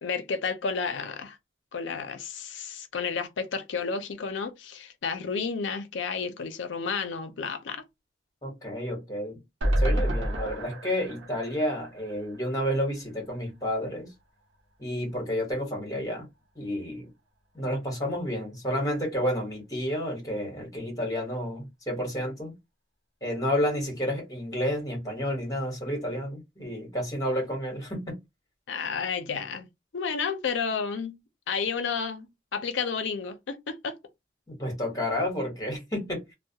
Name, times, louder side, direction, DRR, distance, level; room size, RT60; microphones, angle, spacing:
voice 1, 0.0-1.4 1.7-7.8 28.7-29.7 29.9-31.2 31.5-34.0, left 5 dB, 70° left, 0.5 m, -31 dB
voice 2, 8.4-9.4 9.8-14.1 14.8-16.3 16.5-17.1 17.5-22.5 23.2-28.2 34.5-36.3, equal, 20° left, 1.1 m, -30 dB
sound 1, 9.6-12.8 13.2-13.3 13.5-13.6, equal, 90° right, 0.8 m, -29 dB
2.2 x 2.1 x 2.7 m
head